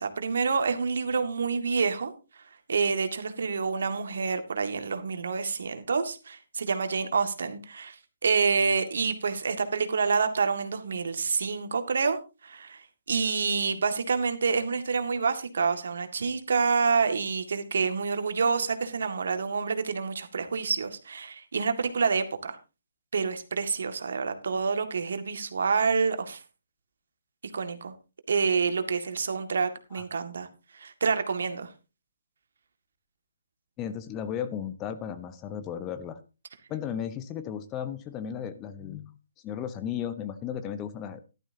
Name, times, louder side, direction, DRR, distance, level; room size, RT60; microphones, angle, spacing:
voice 1, 0.0-2.1 2.7-8.0 8.2-12.2 12.4-12.8 13.1-22.6 23.1-26.4 27.5-27.9 28.3-30.5 30.7-31.7, right 5 dB, 60° right, 1.9 m, -27 dB
voice 2, 33.8-36.2 36.7-39.2 39.4-41.2, left 9 dB, 20° left, 1.0 m, -35 dB
15.0 x 12.0 x 2.8 m
figure-of-eight pair, 140°, 0 cm